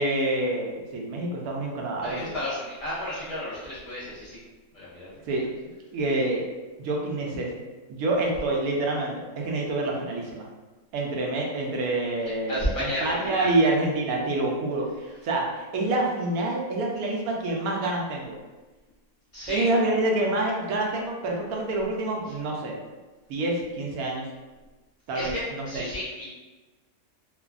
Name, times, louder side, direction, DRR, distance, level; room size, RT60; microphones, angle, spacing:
voice 1, 0.0-2.2 5.3-5.5 5.9-6.4 6.8-7.5 7.9-10.5 10.9-18.4 19.5-22.8 23.3-24.3 25.1-25.8, right 2 dB, 85° right, -1 dB, 1.1 m, -27 dB
voice 2, 2.0-4.4 4.7-5.2 12.5-13.5 19.3-19.6 25.1-26.2, left 1 dB, 30° left, -10 dB, 0.7 m, -32 dB
3.2 x 2.2 x 2.3 m, 1.2 s
omnidirectional pair, 1.5 m